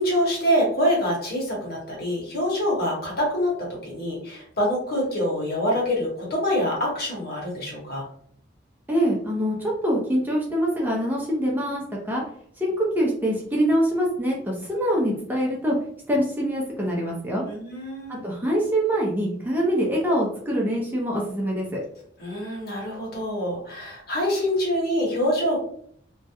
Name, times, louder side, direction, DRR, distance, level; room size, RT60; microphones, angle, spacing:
voice 1, 0.0-8.0 17.4-18.2 22.2-25.6, equal, 55° left, -3 dB, 0.9 m, -25 dB
voice 2, 8.9-12.2 12.6-15.8 16.1-17.4 18.1-21.8, equal, 10° right, -3 dB, 0.4 m, -24 dB
2.3 x 2.0 x 2.8 m, 0.63 s
head